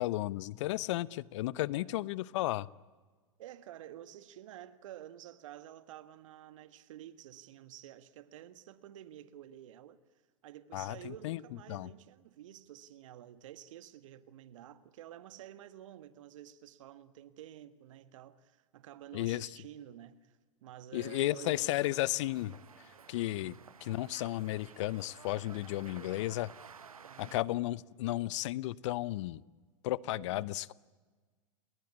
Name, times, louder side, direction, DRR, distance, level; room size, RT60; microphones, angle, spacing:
voice 1, 0.0-2.7 10.7-11.4 11.7-11.9 19.1-19.5 20.9-22.6 23.1-23.5 23.8-26.5 27.2-29.4 29.8-30.7, left 17 dB, 60° left, 0.8 m, -33 dB
voice 2, 3.4-10.0 10.4-22.0 23.4-23.7 27.0-27.5 30.1-30.5, right 11 dB, 65° right, 1.7 m, -50 dB
sound 1, 21.0-27.4, right 6 dB, 90° right, 1.0 m, -54 dB
30.0 x 20.5 x 9.7 m
hypercardioid pair, 100°, 18 cm